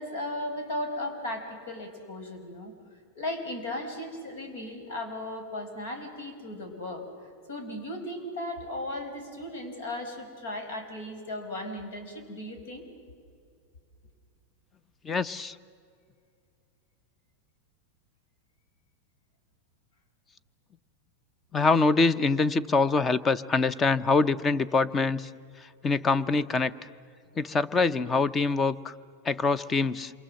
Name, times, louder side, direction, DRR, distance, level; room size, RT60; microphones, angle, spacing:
voice 1, 0.0-2.7 3.2-7.1 7.5-12.8, left 1 dB, 75° left, 6 dB, 5.3 m, -36 dB
voice 2, 15.0-15.6 21.5-25.3 25.6-26.7 27.4-28.9 29.2-30.1, left 4 dB, 20° left, 18 dB, 0.7 m, -24 dB
28.0 x 24.0 x 7.7 m, 2.3 s
supercardioid pair, 145°, 0 cm